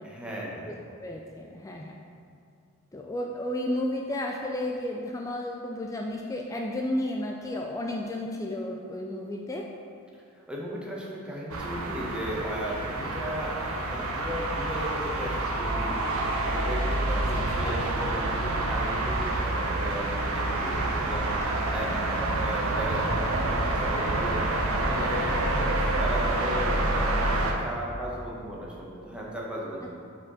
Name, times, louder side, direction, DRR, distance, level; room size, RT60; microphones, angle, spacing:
voice 1, 0.0-0.9 10.3-29.9, equal, 5° right, -4 dB, 1.0 m, -36 dB
voice 2, 0.7-1.9 2.9-9.6 17.3-17.7, left 1 dB, 15° left, 0 dB, 0.3 m, -32 dB
sound 1, 11.5-27.5, right 2 dB, 80° right, 0.8 m, -27 dB
5.2 x 4.3 x 5.6 m, 2.4 s
head